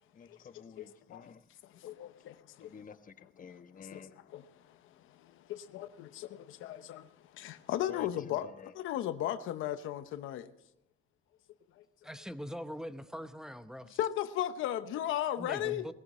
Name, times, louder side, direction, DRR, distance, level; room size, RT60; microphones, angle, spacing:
voice 1, 0.1-1.4 2.6-4.1 7.9-8.7, left 6 dB, 40° left, 1.3 m, -50 dB
voice 2, 0.8-1.2 1.6-2.7 3.8-4.8 5.1-10.5 13.9-15.9, left 12 dB, 90° left, 0.9 m, -36 dB
voice 3, 12.0-14.0 15.3-15.9, equal, 5° right, 0.9 m, -42 dB
19.5 x 15.0 x 4.3 m
cardioid pair, 90°, 20 cm